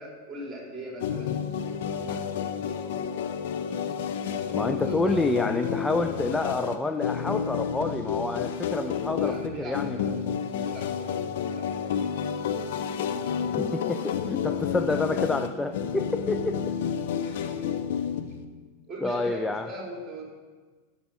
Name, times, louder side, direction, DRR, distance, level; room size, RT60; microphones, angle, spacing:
voice 1, 0.0-1.4 1.9-2.8 4.4-5.7 9.2-10.2 10.6-11.2 11.5-12.0 17.2-17.7 18.9-20.3, right 1 dB, 15° right, -1 dB, 2.8 m, -41 dB
sound 1, 1.0-18.4, left 7 dB, 55° left, 0.6 m, -30 dB
voice 2, 4.5-10.0 13.6-16.7 19.0-19.7, left 2 dB, 10° left, 7 dB, 0.3 m, -28 dB
13.0 x 5.6 x 5.1 m, 1.4 s
figure-of-eight pair, 90°, 0 cm